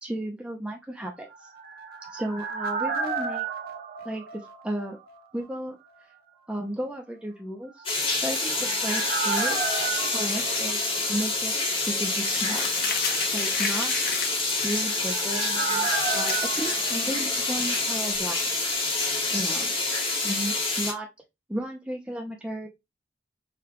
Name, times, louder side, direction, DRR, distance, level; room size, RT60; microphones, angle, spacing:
voice 1, 0.0-1.3 2.1-3.5 4.0-5.0 5.3-5.8 6.5-7.8 8.1-9.6 10.1-11.5 11.9-12.7 13.3-13.9 14.6-18.4 19.3-19.9 20.2-21.1 21.5-22.7, right 1 dB, 5° right, 0 dB, 0.6 m, -33 dB
sound 1, 1.3-5.2 5.4-5.5 7.9-11.6 11.9-12.0 14.3-18.1 18.4-18.5, right 5 dB, 55° right, 0.7 m, -33 dB
sound 2, 7.9-20.9, left 3 dB, 30° left, 1.2 m, -27 dB
Crumpling crinkling, 12.2-14.7 15.1-15.2 15.7-17.3, left 5 dB, 55° left, 0.8 m, -33 dB
4.9 x 2.4 x 2.9 m, 0.21 s
head